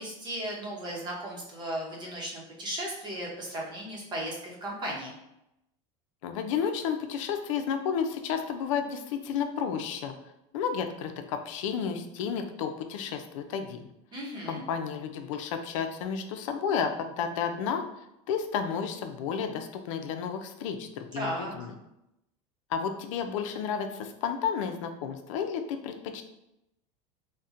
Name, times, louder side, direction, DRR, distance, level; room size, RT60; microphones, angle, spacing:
voice 1, 0.0-5.1 14.1-14.6 21.2-21.5, right 1 dB, 30° right, -3 dB, 0.8 m, -36 dB
voice 2, 6.2-10.1 10.5-13.9 14.5-17.8 18.3-21.7 22.7-26.2, left 7 dB, 85° left, 7 dB, 0.5 m, -32 dB
4.0 x 2.1 x 2.5 m, 0.87 s
supercardioid pair, 145°, 16 cm